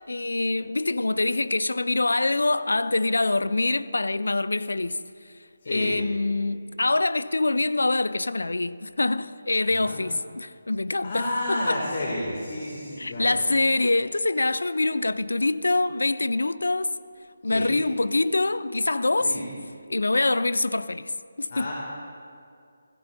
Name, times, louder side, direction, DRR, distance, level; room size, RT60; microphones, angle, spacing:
voice 1, 0.1-5.0 5.7-11.8 13.0-16.9 17.4-19.4 19.9-21.1 21.4-21.7, left 2 dB, 75° left, 0.4 m, -25 dB
voice 2, 5.6-6.0 9.7-10.0 11.0-13.4 17.4-17.7 19.2-19.4 21.5-21.7, left 1 dB, 45° left, 2.1 m, -31 dB
16.0 x 16.0 x 2.6 m
figure-of-eight pair, 150°, 0 cm